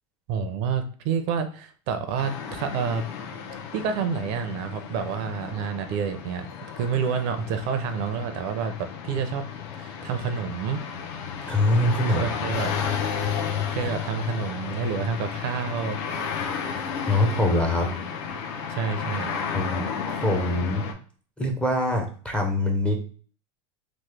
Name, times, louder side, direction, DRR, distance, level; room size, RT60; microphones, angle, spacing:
voice 1, 0.3-3.0 3.7-6.5 6.8-9.5 9.8-10.8 12.1-12.8 13.7-16.0 18.7-19.4, right 6 dB, 55° right, 8 dB, 0.4 m, -28 dB
sound 1, 2.2-20.9, left 7 dB, 65° left, 0.6 m, -33 dB
voice 2, 11.5-12.3 17.0-17.9 19.5-20.9 21.4-23.0, left 1 dB, 5° left, 2 dB, 0.4 m, -24 dB
3.0 x 2.0 x 3.2 m, 0.42 s
supercardioid pair, 145°, 16 cm